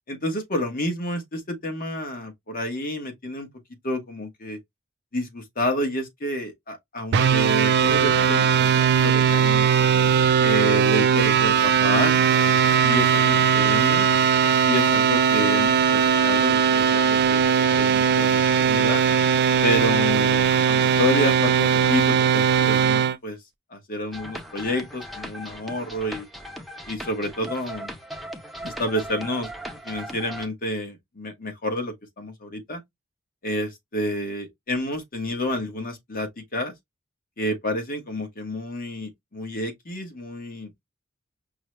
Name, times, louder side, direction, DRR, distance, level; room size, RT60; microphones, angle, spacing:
voice 1, 0.1-3.5 3.8-4.6 5.1-8.7 9.0-9.7 10.4-12.2 12.4-14.1 14.7-19.0 19.6-23.4 23.7-26.3 26.9-27.9 28.6-29.5 29.8-32.8 33.4-36.7 37.4-40.7, left 1 dB, 45° left, 1.2 m, -29 dB
sound 1, 7.1-23.2, right 7 dB, 55° right, 0.4 m, -19 dB
sound 2, 24.1-30.5, equal, ahead, 0.6 m, -38 dB
5.5 x 2.2 x 3.1 m
head